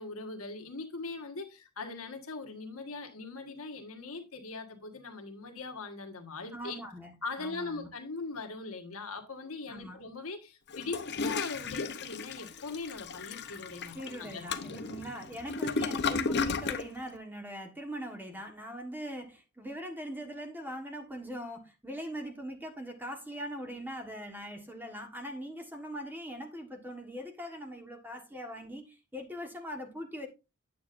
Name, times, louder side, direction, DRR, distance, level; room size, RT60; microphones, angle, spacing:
voice 1, 0.0-6.8 7.2-14.4, left 3 dB, 65° left, 1.5 m, -40 dB
voice 2, 6.5-7.9 9.7-10.0 13.9-30.3, equal, 10° right, 1.4 m, -41 dB
Toilet flush, 10.7-16.9, left 4 dB, 50° left, 0.8 m, -34 dB
9.3 x 7.6 x 2.6 m
head